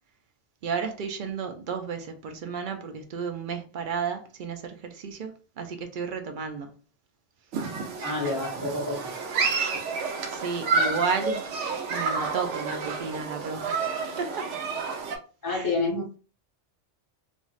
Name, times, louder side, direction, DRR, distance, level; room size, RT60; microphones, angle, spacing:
voice 1, 0.6-6.7 10.3-11.4 11.9-13.8 14.2-14.5 15.5-15.7, right 5 dB, 60° right, 0.6 m, -32 dB
Human group actions, 7.5-15.2, right 4 dB, 90° right, 0.9 m, -30 dB
voice 2, 8.0-9.1 15.4-16.0, left 3 dB, 20° left, 0.6 m, -28 dB
3.0 x 2.5 x 2.4 m
omnidirectional pair, 1.2 m